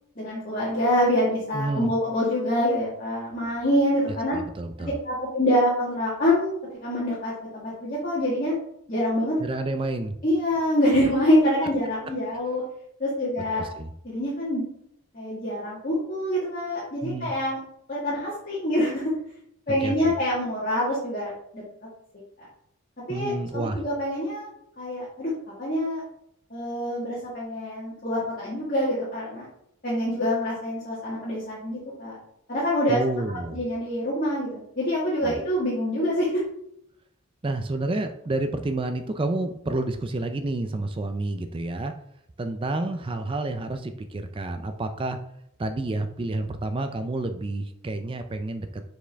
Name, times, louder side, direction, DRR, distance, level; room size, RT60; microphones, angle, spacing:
voice 1, 0.2-4.4 4.8-8.5 8.9-9.4 10.2-12.6 13.0-13.7 14.0-14.6 15.1-17.6 17.9-19.1 19.7-21.6 22.4-22.5 23.1-24.5 24.8-25.3 25.6-26.0 26.5-29.5 29.8-32.2 32.5-33.0 33.3-36.4, equal, 40° left, -8 dB, 1.7 m, -25 dB
voice 2, 1.5-1.9 4.1-4.9 9.4-10.2 13.6-13.9 17.0-17.3 19.8-20.1 23.1-23.8 32.9-33.6 35.2-35.4 37.4-41.9 42.4-45.2 45.6-48.8, right 2 dB, 25° right, 8 dB, 0.3 m, -29 dB
6.5 x 4.9 x 3.4 m, 0.73 s
head